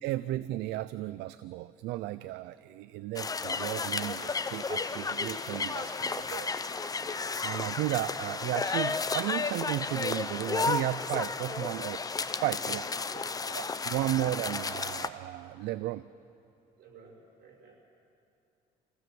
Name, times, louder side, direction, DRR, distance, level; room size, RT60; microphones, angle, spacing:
voice 1, 0.0-5.8 6.3-6.5 7.4-12.0 12.4-12.8 13.5-16.1, right 15 dB, 85° right, 15 dB, 0.5 m, -34 dB
sound 1, 3.2-15.1, left 4 dB, 20° left, 0.7 m, -33 dB
voice 2, 5.8-6.2 7.3-7.8 11.5-11.7 12.6-12.8 13.1-13.6 16.8-17.7, right 4 dB, 70° right, 0 dB, 5.4 m, -51 dB
26.0 x 16.0 x 7.7 m, 2.8 s
cardioid pair, 110°, 17 cm